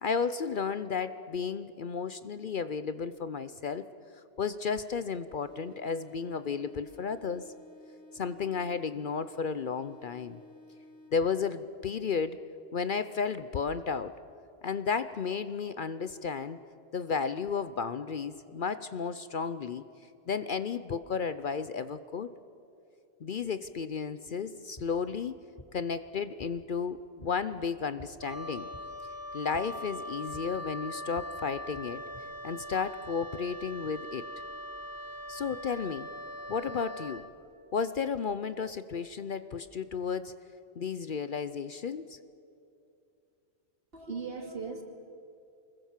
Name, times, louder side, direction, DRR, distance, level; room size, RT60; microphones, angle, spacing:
voice 1, 0.0-3.9 4.4-7.5 8.1-10.4 11.1-12.4 12.7-14.1 14.6-16.6 16.9-19.8 20.3-22.3 23.2-25.4 25.7-28.7 29.3-32.0 32.4-34.3 35.3-36.1 36.5-37.2 37.7-40.3 40.8-42.2, left 5 dB, 55° left, 13 dB, 0.8 m, -33 dB
sound 1, 5.4-11.4, left 1 dB, 20° left, 6.5 m, -54 dB
sound 2, 24.5-32.2, equal, 35° left, 3.6 m, -55 dB
Wind instrument woodwind instrument, 28.2-37.3, equal, 20° right, 0.9 m, -41 dB
voice 2, 43.9-44.8, right 5 dB, 55° right, 4 dB, 2.6 m, -38 dB
24.5 x 21.0 x 7.3 m, 2.6 s
omnidirectional pair, 1.2 m